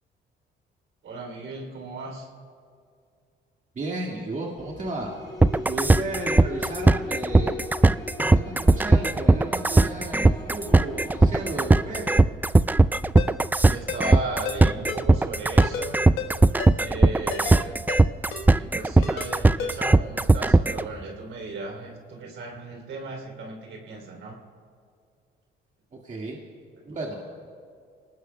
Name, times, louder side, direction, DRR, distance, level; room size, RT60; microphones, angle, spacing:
voice 1, 1.0-2.3 13.5-16.0 16.8-17.8 18.4-24.4, right 3 dB, 70° right, 1 dB, 3.3 m, -36 dB
voice 2, 3.7-5.1 5.7-12.3 25.9-26.4 26.8-27.2, right 2 dB, 40° right, -2 dB, 2.0 m, -34 dB
sound 1, 4.6-12.2, left 3 dB, 20° left, 3.8 m, -39 dB
sound 2, 5.4-20.8, right 2 dB, 10° right, 0.3 m, -18 dB
Ringtone, 13.2-13.3 13.9-14.2 14.4-14.6 14.9-15.0 15.6-15.9 16.2-16.3 16.6-16.7 17.3-17.6 17.9-18.0 18.3-18.4 19.0-19.3 19.6-19.7, left 7 dB, 90° left, 1.4 m, -32 dB
27.0 x 19.0 x 2.3 m, 2.2 s
cardioid pair, 90°, 20 cm